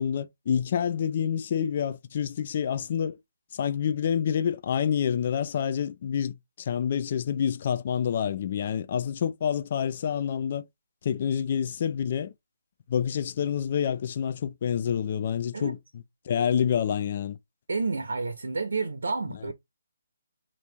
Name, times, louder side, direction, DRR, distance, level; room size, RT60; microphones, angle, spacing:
voice 1, 0.0-3.2 3.5-10.6 11.0-12.3 12.9-15.8 16.3-17.4, left 8 dB, 40° left, 0.3 m, -27 dB
voice 2, 17.7-19.5, right 4 dB, 85° right, 0.7 m, -30 dB
3.0 x 2.6 x 3.3 m
hypercardioid pair, 165°, 0 cm